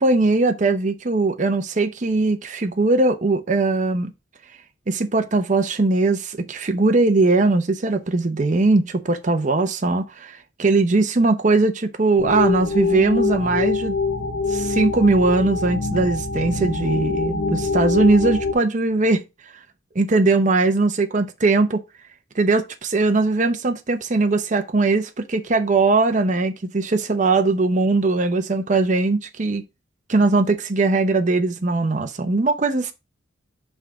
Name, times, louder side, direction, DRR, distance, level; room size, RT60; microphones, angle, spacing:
voice 1, 0.0-4.1 4.9-14.0 14.5-19.2 19.9-21.8 22.4-29.6 30.1-32.9, right 3 dB, 40° right, 0.7 m, -20 dB
sound 1, 12.2-18.5, left 4 dB, 65° left, 1.0 m, -24 dB
5.6 x 3.6 x 5.6 m
head